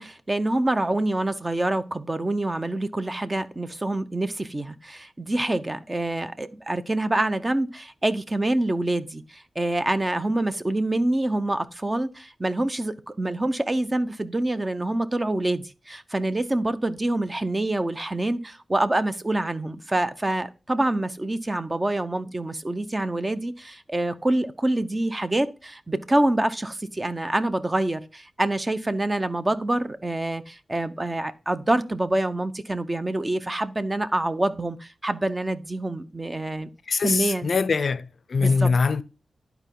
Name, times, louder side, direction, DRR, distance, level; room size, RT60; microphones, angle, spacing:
voice 1, 0.0-36.7 37.0-37.5 38.4-38.7, right 1 dB, 25° right, 0.7 m, -26 dB
voice 2, 36.9-39.0, left 4 dB, 60° left, 0.5 m, -23 dB
11.0 x 4.6 x 3.7 m
wide cardioid pair, 85°, 0 cm